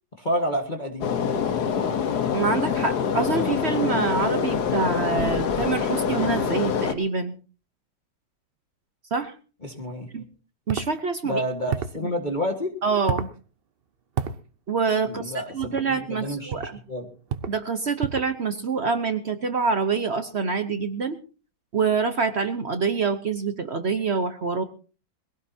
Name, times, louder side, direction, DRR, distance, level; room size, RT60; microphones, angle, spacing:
voice 1, 0.2-1.1 9.6-10.1 11.2-12.7 15.0-16.5 16.9-17.1, equal, 25° left, 3 dB, 1.6 m, -29 dB
sound 1, 1.0-6.9, left 7 dB, 60° left, 1.5 m, -25 dB
voice 2, 2.3-7.4 9.1-9.3 10.1-10.2 10.7-11.4 12.8-13.3 14.7-16.8 17.5-21.2 21.7-24.6, right 5 dB, 50° right, 9 dB, 0.8 m, -26 dB
sound 2, 10.7-10.9 11.7-12.0 13.1-13.4 14.2-14.4 15.6-15.9 16.5-16.8 17.3-17.6 18.0-18.3, right 7 dB, 85° right, 0.5 m, -30 dB
21.5 x 16.5 x 2.8 m, 0.36 s
omnidirectional pair, 2.1 m